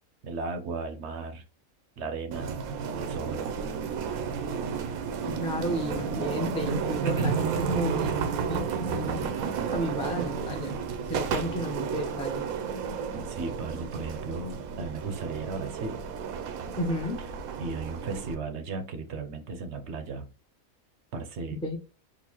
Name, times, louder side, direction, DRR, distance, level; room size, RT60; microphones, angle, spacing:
voice 1, 0.2-1.4 2.0-2.6 3.0-3.4 6.7-7.4 13.1-16.0 17.6-20.3 21.1-21.6, right 4 dB, 65° right, 7 dB, 0.8 m, -35 dB
sound 1, 2.3-18.3, right 6 dB, 85° right, 1.0 m, -32 dB
voice 2, 5.3-9.3 9.7-10.8 11.1-12.4 16.8-17.2 21.5-21.8, equal, 5° left, 2 dB, 0.4 m, -32 dB
3.9 x 2.4 x 2.9 m, 0.35 s
omnidirectional pair, 1.4 m